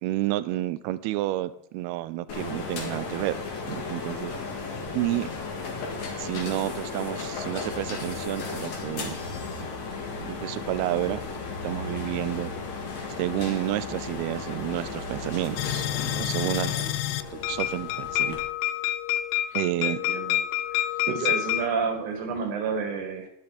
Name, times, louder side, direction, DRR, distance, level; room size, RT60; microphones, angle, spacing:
voice 1, 0.0-3.4 3.7-4.3 4.9-5.3 6.2-9.2 10.2-11.2 11.6-12.5 13.2-16.9 17.3-18.4 19.5-20.0 21.1-21.2, right 15 dB, 80° right, 15 dB, 2.4 m, -30 dB
sound 1, 2.3-18.4, left 4 dB, 50° left, 2.7 m, -35 dB
sound 2, 15.6-21.7, left 14 dB, 85° left, 2.5 m, -28 dB
voice 2, 19.5-20.4 20.7-23.3, right 5 dB, 55° right, 4 dB, 3.0 m, -31 dB
12.5 x 10.5 x 4.2 m, 0.71 s
omnidirectional pair, 4.8 m